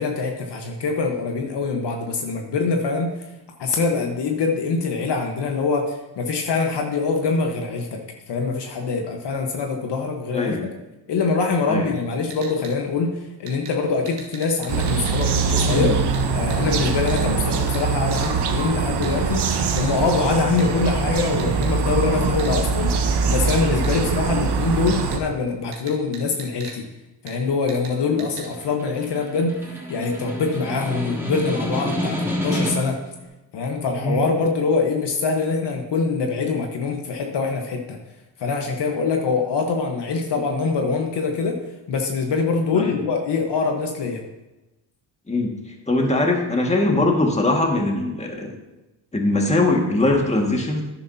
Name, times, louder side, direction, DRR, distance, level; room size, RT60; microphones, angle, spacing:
voice 1, 0.0-3.1 3.6-10.6 11.1-15.9 16.3-26.8 27.2-33.1 33.5-38.0 38.4-44.2, left 4 dB, 55° left, 2 dB, 1.4 m, -24 dB
voice 2, 10.3-10.7 11.7-11.9 15.7-16.0 17.3-17.4 28.1-28.2 33.9-34.3 42.7-43.0 45.3-45.5 45.9-48.5 49.1-50.8, left 2 dB, 15° left, 1 dB, 2.0 m, -21 dB
sound 1, 12.3-12.7 13.5-13.7 14.1-15.3 15.6-15.8 16.1-16.2 16.5-16.6 17.1-17.3 17.7-17.8 18.1-18.3 19.0-19.1 19.8-19.9 20.6-20.7 21.4-21.7 22.4-22.5 23.8-23.9 24.9-25.2 25.7-26.8 27.3-27.4 27.7-27.9 28.2-28.5, right 5 dB, 80° right, 2.1 m, -39 dB
sound 2, 14.7-25.2, right 5 dB, 55° right, 1.2 m, -23 dB
Snare drum, 28.2-33.1, equal, 5° right, 3.0 m, -29 dB
11.5 x 9.8 x 2.9 m, 1.0 s
supercardioid pair, 75°, 49 cm